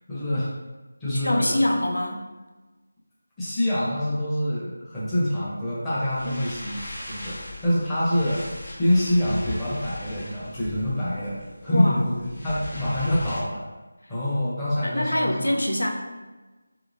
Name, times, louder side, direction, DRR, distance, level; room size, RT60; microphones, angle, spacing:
voice 1, 0.1-0.5 1.0-1.6 3.4-6.7 7.1-8.4 8.8-12.1 12.4-13.6 14.1-15.5, left 1 dB, 10° left, -10 dB, 0.7 m, -25 dB
voice 2, 1.1-2.3 6.3-6.4 11.7-12.0 14.4-14.5 14.8-15.9, left 1 dB, 80° left, 1 dB, 0.5 m, -25 dB
sound 1, 6.0-13.4, left 1 dB, 45° left, 1.0 m, -38 dB
3.0 x 2.8 x 2.6 m, 1.2 s
figure-of-eight pair, 165°, 0 cm